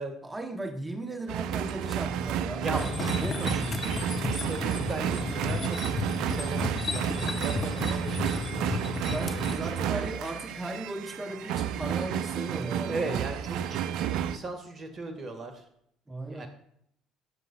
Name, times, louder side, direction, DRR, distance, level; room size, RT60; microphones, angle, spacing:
voice 1, 0.2-4.1 9.1-13.2 16.1-16.5, right 2 dB, 15° right, 0.9 m, -37 dB
sound 1, 1.3-14.4, right 9 dB, 60° right, 0.4 m, -31 dB
voice 2, 2.6-3.2 4.3-8.7 9.6-10.1 12.9-15.6 16.2-16.5, right 2 dB, 40° right, 1.6 m, -37 dB
sound 2, 2.8-9.5, left 4 dB, 35° left, 1.0 m, -33 dB
sound 3, 7.8-13.6, left 11 dB, 70° left, 1.4 m, -56 dB
12.0 x 6.7 x 2.3 m
figure-of-eight pair, 60°, 0 cm